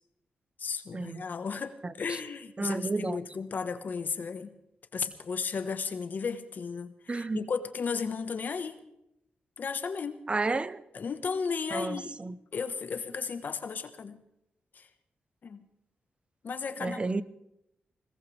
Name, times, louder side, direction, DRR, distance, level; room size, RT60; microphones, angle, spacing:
voice 1, 0.6-4.5 4.9-8.8 9.6-10.2 10.9-12.2 12.5-14.2 14.7-14.9 15.4-15.7 16.4-17.2, left 5 dB, 60° left, 1.3 m, -34 dB
voice 2, 1.8-2.2 2.6-3.2 7.1-7.5 10.3-10.8 11.7-12.4 16.8-17.2, right 3 dB, 30° right, 0.8 m, -32 dB
21.5 x 18.5 x 3.4 m
cardioid pair, 70°, 3 cm